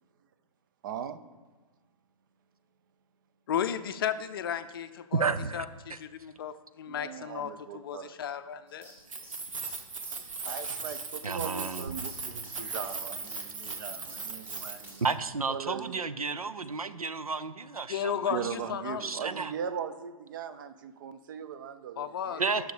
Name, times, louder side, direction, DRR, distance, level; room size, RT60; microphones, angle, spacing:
voice 1, 0.8-1.2 6.9-8.2 8.9-9.1 9.9-15.1 15.5-16.0 16.3-16.4 18.3-22.5, right 7 dB, 35° right, 11 dB, 0.6 m, -39 dB
voice 2, 3.5-5.2 5.5-5.6 6.0-8.9 17.9-19.0 22.0-22.6, left 8 dB, 40° left, 10 dB, 0.5 m, -34 dB
voice 3, 5.1-6.0 11.2-12.0 15.0-18.3 19.0-19.5 22.4-22.7, right 4 dB, 80° right, 13 dB, 0.6 m, -32 dB
sound 1, 8.7-15.1, equal, 10° right, 2.0 m, -53 dB
Keys jangling, 9.0-15.1, right 4 dB, 60° right, 1.2 m, -38 dB
11.5 x 6.4 x 5.0 m, 1.3 s
figure-of-eight pair, 125°, 18 cm